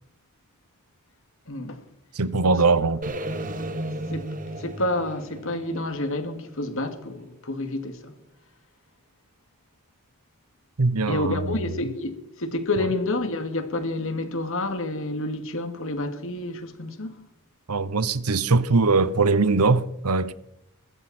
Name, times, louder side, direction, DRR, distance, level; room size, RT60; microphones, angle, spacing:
voice 1, 1.5-1.8 2.4-2.5 4.1-4.2 4.6-8.1 11.1-17.2, left 2 dB, 65° left, 2.4 m, -29 dB
voice 2, 2.1-3.2 10.8-11.7 17.7-20.3, right 3 dB, 85° right, 0.9 m, -21 dB
sound 1, 3.0-7.1, right 1 dB, 40° right, 1.5 m, -34 dB
21.5 x 14.0 x 4.4 m
head